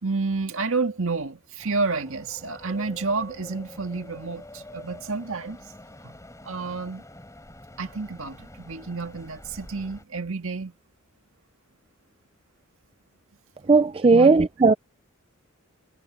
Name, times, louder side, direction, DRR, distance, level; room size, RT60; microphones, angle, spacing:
voice 1, 0.0-5.6 6.0-6.1 6.4-7.0 7.8-10.7 14.1-14.4, right 4 dB, 70° right, 1.9 m, -30 dB
sound 1, 1.6-10.0, left 1 dB, 15° left, 5.1 m, -46 dB
voice 2, 13.7-14.7, right 4 dB, 25° right, 0.4 m, -16 dB
head